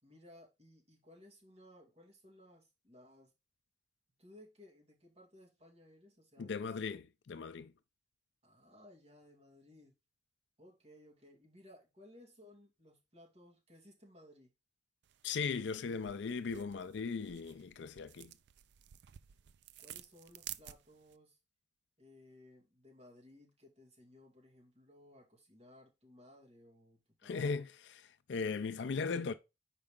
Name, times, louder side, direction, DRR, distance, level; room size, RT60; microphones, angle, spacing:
voice 1, 0.0-3.3 4.2-7.0 8.4-9.9 10.6-14.5 19.8-21.4 22.0-27.5, left 1 dB, 35° right, 2.3 m, -60 dB
voice 2, 6.4-7.0 7.3-7.7 15.2-18.3 27.2-29.3, left 5 dB, 70° left, 0.4 m, -38 dB
sound 1, 15.0-21.2, right 13 dB, 65° right, 0.4 m, -53 dB
5.3 x 4.8 x 3.6 m
head